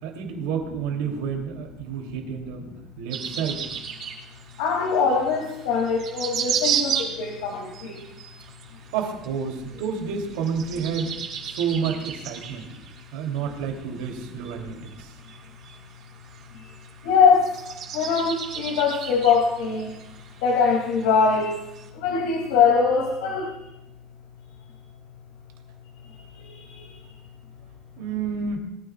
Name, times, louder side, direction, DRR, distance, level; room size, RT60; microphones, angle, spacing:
voice 1, 0.0-2.7 3.0-3.6 8.9-11.1 11.4-12.7 13.1-15.1 28.0-28.6, right 6 dB, 90° right, 2 dB, 2.8 m, -29 dB
sound 1, 3.1-21.9, right 8 dB, 50° right, 4.7 m, -34 dB
voice 2, 4.6-6.9 7.2-7.9 17.0-17.5 17.9-19.9 20.4-21.6 22.0-23.5, left 5 dB, 85° left, -1 dB, 2.5 m, -21 dB
23.0 x 15.0 x 2.4 m, 0.93 s
cardioid pair, 155°, 0 cm